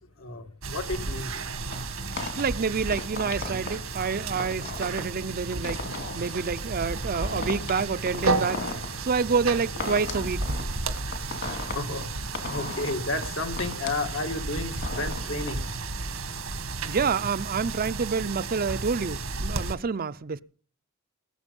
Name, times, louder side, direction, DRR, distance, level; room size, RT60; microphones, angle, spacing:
voice 1, 0.2-1.3 11.6-12.1 12.5-15.7, left 2 dB, 75° left, 2.2 m, -32 dB
sound 1, 0.6-19.8, right 3 dB, 90° right, 1.9 m, -33 dB
sound 2, 1.7-15.5, left 3 dB, 60° left, 2.8 m, -38 dB
voice 2, 2.4-5.8 6.1-8.6 9.0-10.6 16.9-20.4, right 5 dB, 45° right, 0.5 m, -28 dB
20.0 x 8.0 x 5.3 m
head